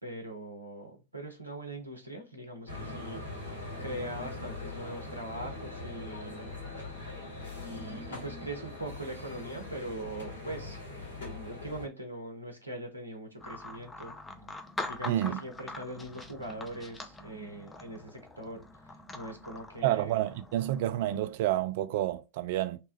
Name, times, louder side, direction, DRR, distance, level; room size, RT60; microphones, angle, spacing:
voice 1, 0.0-6.5 7.0-7.2 7.6-10.8 11.3-14.1 14.9-20.2, right 1 dB, 85° right, 0.7 m, -42 dB
sound 1, 2.7-11.9, left 2 dB, 65° left, 1.6 m, -41 dB
sound 2, 13.4-21.3, left 2 dB, 10° left, 0.5 m, -44 dB
voice 2, 15.1-15.4 19.8-22.8, right 13 dB, 50° right, 0.3 m, -29 dB
3.0 x 2.2 x 3.0 m
figure-of-eight pair, 90°, 0 cm